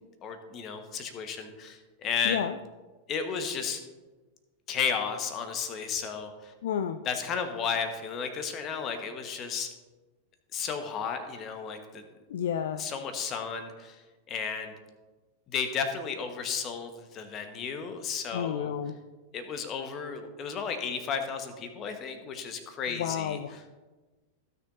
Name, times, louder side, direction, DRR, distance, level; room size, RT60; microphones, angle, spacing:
voice 1, 0.2-2.4 3.1-3.8 4.7-6.5 7.0-9.7 10.5-12.0 12.8-14.0 14.3-14.7 15.5-18.7 19.3-23.7, left 6 dB, 30° left, 7 dB, 1.3 m, -33 dB
voice 2, 6.6-7.0 12.3-12.8 18.3-19.0 22.9-23.6, left 9 dB, 60° left, 9 dB, 0.4 m, -31 dB
16.0 x 6.7 x 2.7 m, 1.2 s
figure-of-eight pair, 90°, 0 cm